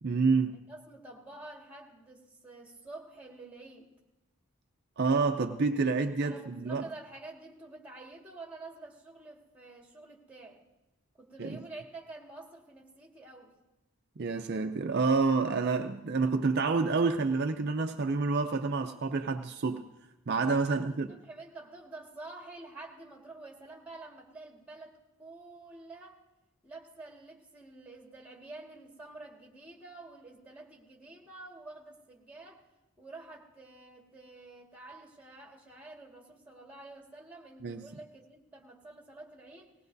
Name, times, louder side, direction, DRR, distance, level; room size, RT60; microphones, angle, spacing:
voice 1, 0.0-0.5 5.0-6.8 11.4-11.6 14.2-19.8 20.3-21.1 37.6-37.8, right 4 dB, 50° right, 0.5 m, -28 dB
voice 2, 0.7-3.9 6.2-10.6 11.2-13.5 20.7-26.2 26.6-32.6 33.0-39.7, right 2 dB, 5° right, 1.7 m, -48 dB
19.0 x 18.0 x 2.6 m
head